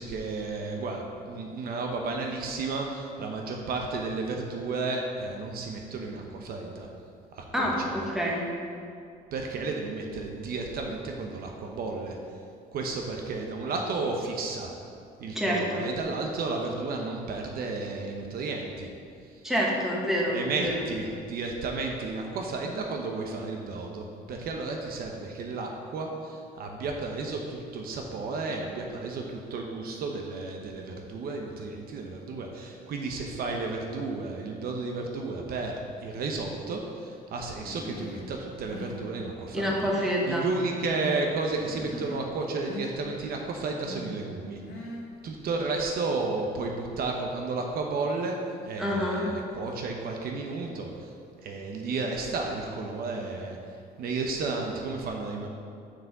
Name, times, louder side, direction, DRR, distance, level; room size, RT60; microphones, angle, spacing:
voice 1, 0.0-6.9 7.4-8.0 9.3-12.2 12.7-14.7 15.2-18.9 20.3-35.7 36.0-39.9 40.3-44.6 45.2-48.4 48.6-51.1 51.4-53.6 54.0-55.5, right 3 dB, 65° right, 2 dB, 0.9 m, -32 dB
voice 2, 7.5-8.4 15.3-15.9 19.4-20.8 39.5-40.5 48.8-49.3, equal, 5° right, -4 dB, 1.6 m, -27 dB
Human voice, 37.6-38.3 38.6-39.1 39.5-40.3 40.6-41.3 41.6-42.3 42.6-42.9 43.5-44.1 44.6-45.1, left 1 dB, 70° left, 1.7 m, -41 dB
6.1 x 4.9 x 6.8 m, 2.4 s
cardioid pair, 110°, 17 cm